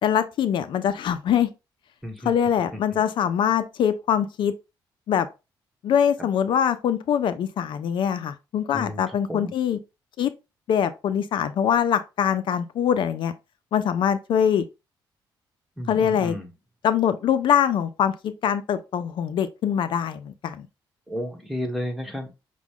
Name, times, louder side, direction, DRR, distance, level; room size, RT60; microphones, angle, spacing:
voice 1, 0.0-1.5 2.2-4.5 5.1-5.3 5.8-9.8 10.2-10.3 10.7-13.3 13.7-14.7 15.9-16.4 16.8-20.7, left 8 dB, 70° left, 0.5 m, -23 dB
voice 2, 2.0-2.3 2.9-3.0 8.7-9.5 15.8-16.5 21.1-22.3, left 1 dB, ahead, 1.3 m, -32 dB
6.0 x 2.2 x 3.6 m
cardioid pair, 95°, 9 cm